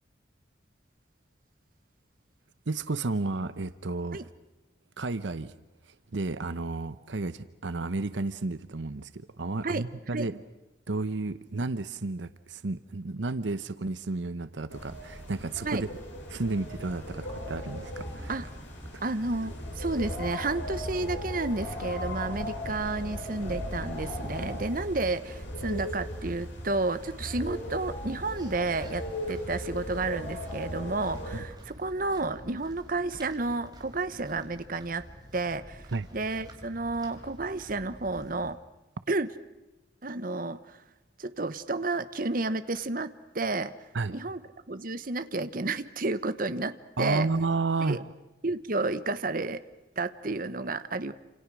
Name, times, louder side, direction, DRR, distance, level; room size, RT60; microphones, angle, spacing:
voice 1, 2.7-4.2 5.0-5.5 5.9-10.4 10.9-15.9 16.3-18.4 31.3-31.4 35.9-36.1 43.9-44.1 47.0-48.0, right 3 dB, 75° right, 13 dB, 0.8 m, -32 dB
sound 1, 14.7-31.4, equal, 80° left, 7.9 m, -37 dB
voice 2, 19.0-35.0 35.3-38.6 39.1-39.3 40.0-40.8 41.2-43.7 44.1-44.4 44.7-47.3 47.9-48.0 48.4-49.6 50.0-51.1, right 3 dB, 50° right, 12 dB, 1.0 m, -31 dB
sound 2, 28.2-38.6, equal, 20° right, 3.8 m, -49 dB
28.5 x 27.5 x 6.2 m, 1.1 s
head